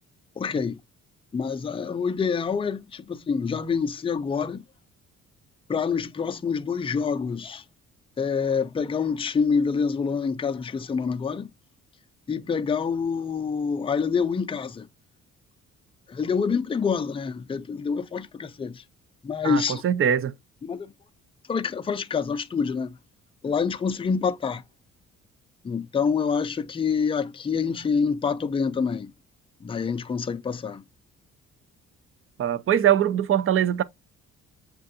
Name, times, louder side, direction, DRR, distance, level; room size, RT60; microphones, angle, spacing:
voice 1, 0.4-0.8 1.3-4.6 5.7-7.6 8.2-11.5 12.3-14.9 16.1-18.8 19.2-19.8 20.6-20.9 21.5-23.0 23.4-24.6 25.6-29.1 29.6-30.8, left 5 dB, 20° left, 0.4 m, -26 dB
voice 2, 19.4-20.3 32.4-33.8, right 9 dB, 45° right, 0.5 m, -22 dB
7.3 x 2.5 x 2.6 m
cardioid pair, 90°, 30 cm